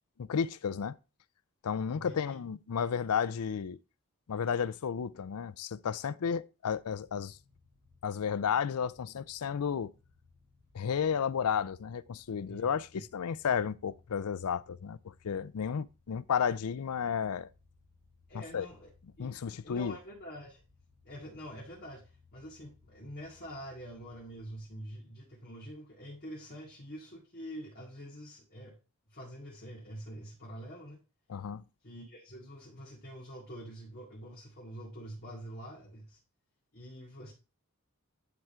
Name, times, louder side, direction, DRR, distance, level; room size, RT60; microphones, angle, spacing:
voice 1, 0.2-1.0 1.6-3.8 4.3-7.4 8.0-9.9 10.7-17.5 18.3-18.7 19.2-20.0 31.3-31.6, left 7 dB, 85° left, 0.4 m, -32 dB
voice 2, 1.9-2.4 12.5-13.0 18.3-18.9 19.2-19.3 19.6-20.6 21.0-28.8 29.1-31.0 31.8-36.2 36.7-37.3, equal, 45° left, 2.2 m, -46 dB
sound 1, 6.8-25.0, left 3 dB, 90° right, 4.1 m, -65 dB
10.5 x 3.7 x 4.4 m
head